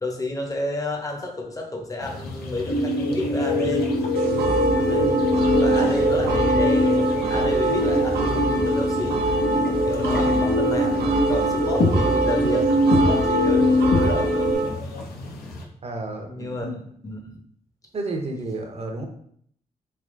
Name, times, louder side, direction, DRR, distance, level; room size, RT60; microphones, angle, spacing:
voice 1, 0.0-3.9 4.7-5.1 5.5-9.2 9.9-12.7 13.0-14.5 16.3-16.7 17.0-17.4, left 1 dB, 20° left, 2 dB, 0.8 m, -30 dB
sound 1, 2.0-15.6, left 2 dB, 75° left, 0.6 m, -31 dB
sound 2, 2.7-14.5, left 1 dB, 55° left, 1.5 m, -23 dB
sound 3, 4.1-14.7, right 3 dB, 85° right, 0.4 m, -24 dB
voice 2, 15.8-16.8 17.9-19.1, right 2 dB, 40° right, 3 dB, 0.7 m, -31 dB
3.4 x 2.8 x 2.6 m, 0.65 s
cardioid pair, 55°, 16 cm